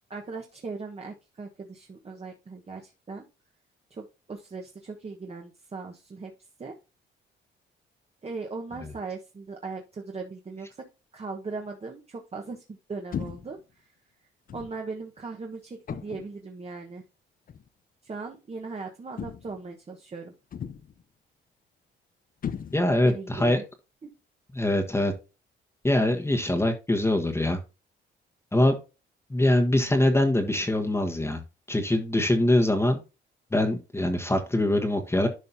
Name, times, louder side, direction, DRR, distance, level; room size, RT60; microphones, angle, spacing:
voice 1, 0.1-3.3 3.9-6.3 6.6-6.8 8.2-10.8 11.1-13.9 14.5-17.0 18.0-20.3 23.0-23.6 24.0-24.1, right 4 dB, 30° right, 2 dB, 1.3 m, -38 dB
sound 1, 13.1-13.6 14.5-14.8 15.9-16.4 17.5-17.7 19.2-19.7 20.5-21.0 22.4-23.1, left 8 dB, 45° left, 0.7 m, -36 dB
voice 2, 22.7-23.6 24.5-25.1 25.8-27.6 28.5-28.7 29.3-31.4 31.7-33.0 33.5-35.3, left 1 dB, 15° left, 4 dB, 1.3 m, -23 dB
11.0 x 5.3 x 2.8 m, 0.29 s
cardioid pair, 90°, 20 cm